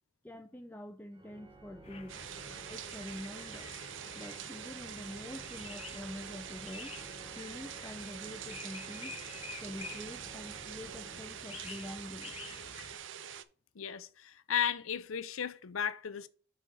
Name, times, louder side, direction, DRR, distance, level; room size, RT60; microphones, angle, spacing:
voice 1, 0.2-2.1 2.7-3.7 4.2-6.9 7.4-9.1 9.6-12.3, left 1 dB, 10° left, 0.4 m, -46 dB
Organ, 1.1-11.9, right 2 dB, 25° right, 1.5 m, -54 dB
sound 1, 1.8-13.0, left 5 dB, 30° left, 0.8 m, -50 dB
sound 2, 2.1-13.4, right 9 dB, 65° right, 0.6 m, -45 dB
voice 2, 13.8-16.3, left 8 dB, 85° left, 0.6 m, -35 dB
5.8 x 4.2 x 6.1 m
head